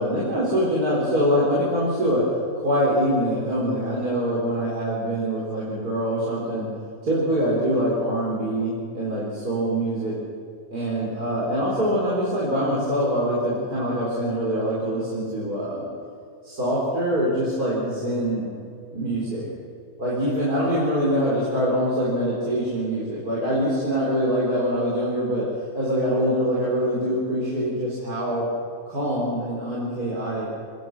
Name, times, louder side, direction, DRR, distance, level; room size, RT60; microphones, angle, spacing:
voice 1, 0.0-2.2 2.6-6.7 7.0-10.2 10.7-15.9 16.4-18.5 18.9-19.5 20.0-25.4 25.7-28.4 28.9-30.5, equal, 80° right, -6 dB, 5.3 m, -24 dB
27.5 x 20.0 x 6.4 m, 2.4 s
omnidirectional pair, 1.6 m